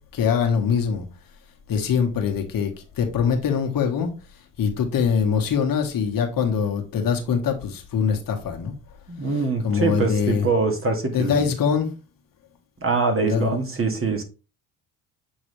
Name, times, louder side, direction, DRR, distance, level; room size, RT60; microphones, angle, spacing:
voice 1, 0.1-1.1 1.7-4.1 4.6-8.7 9.3-10.5 11.1-11.9 13.2-13.6, left 6 dB, 55° left, 1.6 m, -23 dB
voice 2, 9.1-11.5 12.8-14.2, right 4 dB, 30° right, 1.9 m, -23 dB
7.6 x 3.9 x 3.3 m
supercardioid pair, 70°, 42 cm